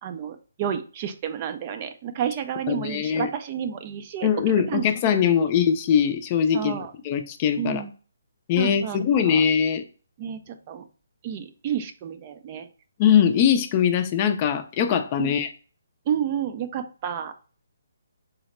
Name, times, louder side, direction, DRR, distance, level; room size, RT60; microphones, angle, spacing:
voice 1, 0.0-4.3 4.7-4.9 6.5-6.9 7.6-7.9 8.6-9.0 9.2-9.4 10.2-10.8 11.2-12.7 15.2-15.3 16.1-17.3, right 9 dB, 35° right, 8 dB, 0.4 m, -30 dB
voice 2, 2.7-3.3 4.2-6.7 7.0-7.8 8.5-9.8 13.0-15.5, left 8 dB, 30° left, 7 dB, 0.4 m, -21 dB
3.9 x 2.1 x 4.1 m, 0.37 s
hypercardioid pair, 150°, 0 cm